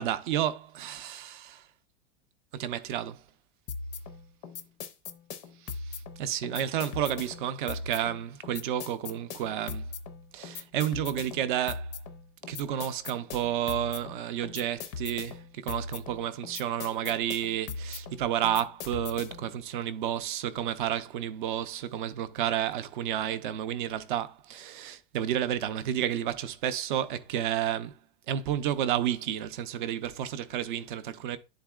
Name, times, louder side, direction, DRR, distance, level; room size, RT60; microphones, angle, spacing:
voice 1, 0.0-1.7 2.5-3.2 5.6-9.9 10.3-12.0 12.5-28.0 28.3-31.4, right 10 dB, 60° right, 0.7 m, -31 dB
sound 1, 3.7-19.5, left 4 dB, 20° left, 0.4 m, -40 dB
11.0 x 4.0 x 2.3 m
supercardioid pair, 180°, 29 cm